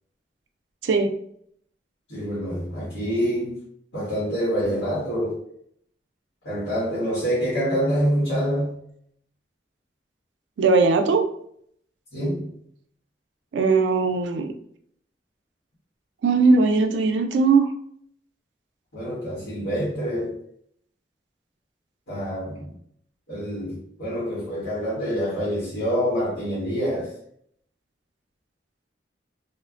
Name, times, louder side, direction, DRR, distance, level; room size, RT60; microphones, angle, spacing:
voice 1, 2.1-3.6 3.9-5.4 6.4-8.8 12.1-12.5 18.9-20.4 22.1-22.7 23.3-27.1, equal, 85° left, 1.2 m, -26 dB
voice 2, 10.6-11.3 13.5-14.5 16.2-17.7, right 4 dB, 80° right, 0.4 m, -19 dB
3.1 x 2.1 x 2.4 m
head